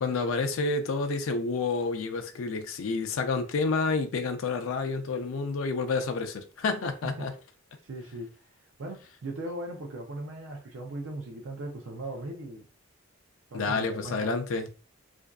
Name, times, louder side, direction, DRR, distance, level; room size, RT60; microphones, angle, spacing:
voice 1, 0.0-7.3 13.5-14.7, left 4 dB, 75° left, 0.4 m, -29 dB
voice 2, 7.8-8.3 8.8-12.7 13.5-14.4, right 2 dB, 70° right, 0.5 m, -38 dB
2.5 x 2.2 x 2.2 m
head